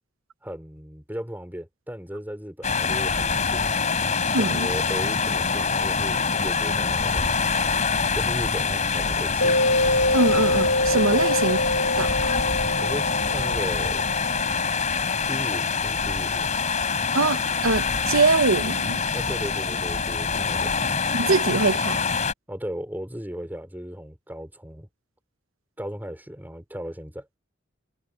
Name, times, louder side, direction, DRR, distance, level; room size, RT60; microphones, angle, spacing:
voice 1, 0.4-3.8 4.4-7.3 8.1-9.6 11.1-11.2 12.7-14.1 15.2-16.5 19.1-20.7 22.5-24.9 25.8-27.3, equal, 10° right, 4.7 m, -36 dB
sound 1, 2.6-22.3, left 5 dB, 35° left, 3.6 m, -25 dB
voice 2, 4.3-4.7 10.1-11.6 12.0-12.4 17.1-19.0 21.1-22.0, right 3 dB, 85° right, 1.0 m, -23 dB
sound 2, 9.4-14.7, left 1 dB, 90° left, 3.0 m, -25 dB
head